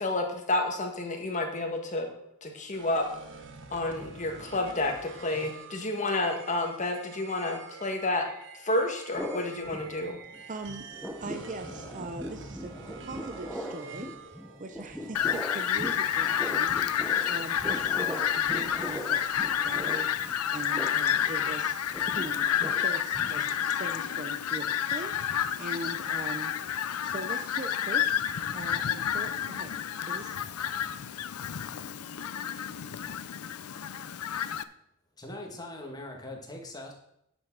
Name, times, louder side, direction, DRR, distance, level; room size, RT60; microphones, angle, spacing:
voice 1, 0.0-2.1 2.4-3.0 3.7-8.3 8.6-10.2, left 2 dB, 35° left, 3 dB, 1.6 m, -30 dB
sound 1, 2.7-20.0, right 4 dB, 55° right, 1.1 m, -48 dB
sound 2, 9.1-10.4 10.7-23.8, equal, ahead, 0.8 m, -40 dB
voice 2, 10.5-10.9 11.2-21.8 22.0-26.5 27.0-29.7 30.1-30.4, right 2 dB, 35° right, 6 dB, 0.6 m, -41 dB
Fowl, 15.1-34.6, left 9 dB, 90° left, 0.5 m, -30 dB
voice 3, 35.2-36.9, left 1 dB, 20° left, 1 dB, 1.7 m, -41 dB
9.7 x 6.3 x 6.1 m, 0.76 s
head